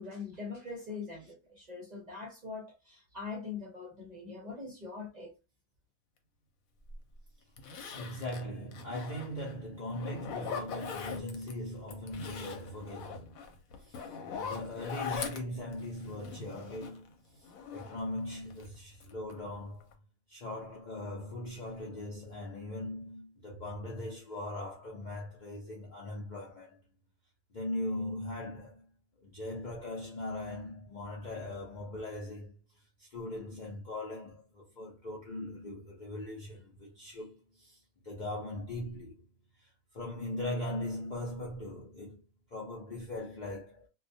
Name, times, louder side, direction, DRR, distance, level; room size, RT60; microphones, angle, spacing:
voice 1, 0.0-5.3, left 4 dB, 45° right, 0.6 m, -42 dB
Zipper (clothing), 6.9-7.0 7.6-9.5 9.9-11.5 11.9-17.1 17.4-18.7 19.0-19.5 19.8-19.9, left 6 dB, 85° left, 1.0 m, -41 dB
voice 2, 7.9-13.4 13.8-19.9 20.3-26.8 27.5-28.9 29.2-32.6 33.0-39.2 39.6-39.7 39.9-42.2 42.5-43.9, left 1 dB, 55° left, 0.5 m, -40 dB
2.3 x 2.2 x 2.6 m
omnidirectional pair, 1.4 m